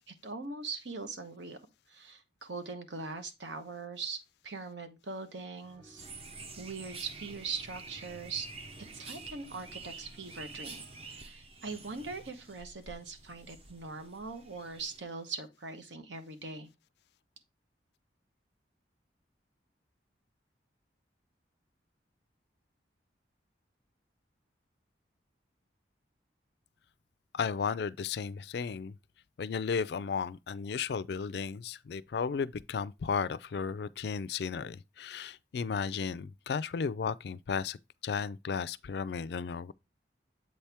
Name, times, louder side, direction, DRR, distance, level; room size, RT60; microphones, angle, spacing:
voice 1, 0.1-1.6 1.9-6.1 6.6-8.5 8.8-16.7, right 4 dB, 80° right, 1.0 m, -41 dB
sound 1, 5.6-11.3, right 1 dB, 50° right, 1.7 m, -60 dB
sound 2, 6.0-15.0, right 3 dB, 30° right, 0.7 m, -48 dB
voice 2, 27.3-29.0 29.4-37.8 38.0-39.7, left 6 dB, 60° left, 0.4 m, -34 dB
7.8 x 4.3 x 3.4 m
head